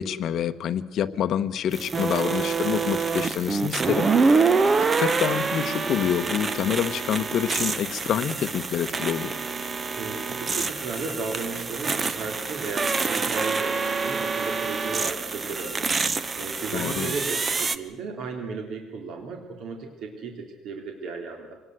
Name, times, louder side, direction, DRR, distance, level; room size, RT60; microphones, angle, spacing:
voice 1, 0.0-4.1 5.0-9.4 16.7-17.1, left 9 dB, 55° left, 10 dB, 1.1 m, -27 dB
sound 1, 1.7-17.8, right 4 dB, 25° right, 0.9 m, -26 dB
voice 2, 9.7-21.5, right 4 dB, 65° right, 3 dB, 3.4 m, -35 dB
25.5 x 19.0 x 8.0 m, 1.1 s
cardioid pair, 150°, 0 cm